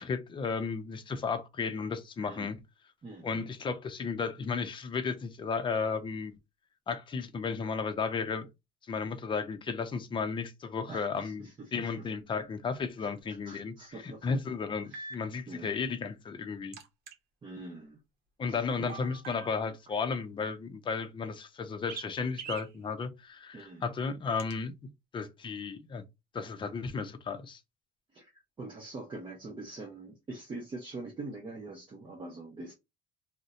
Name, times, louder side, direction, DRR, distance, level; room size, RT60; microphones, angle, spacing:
voice 1, 0.0-2.6 3.2-6.3 6.9-8.5 8.9-13.7 14.0-16.8 18.4-24.7 25.1-26.0 26.3-27.6, left 5 dB, 30° left, 0.5 m, -34 dB
voice 2, 2.2-2.5 3.0-3.4 10.9-11.9 13.0-14.4 14.8-15.1 15.5-15.9 17.4-18.0 18.5-18.9 23.5-23.9 28.1-32.7, right 2 dB, 30° right, 0.7 m, -44 dB
sound 1, 12.8-12.9 14.9-15.2 16.7-17.1 18.9-19.7 21.9-22.1 22.4-22.7 24.4-24.5, right 5 dB, 65° right, 0.8 m, -43 dB
2.6 x 2.1 x 3.6 m
cardioid pair, 110°, 17 cm